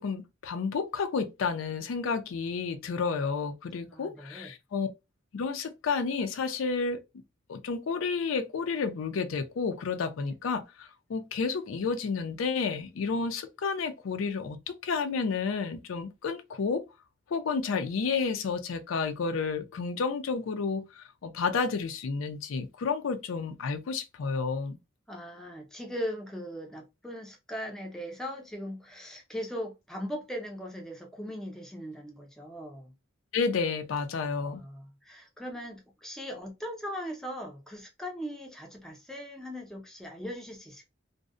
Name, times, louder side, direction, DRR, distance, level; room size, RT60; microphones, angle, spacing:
voice 1, 0.0-4.9 5.3-7.0 7.5-16.8 17.3-24.8 33.3-34.6, left 5 dB, 90° left, 0.4 m, -31 dB
voice 2, 3.9-4.5 25.1-32.9 34.4-40.9, equal, 5° left, 0.4 m, -39 dB
2.6 x 2.0 x 2.4 m
head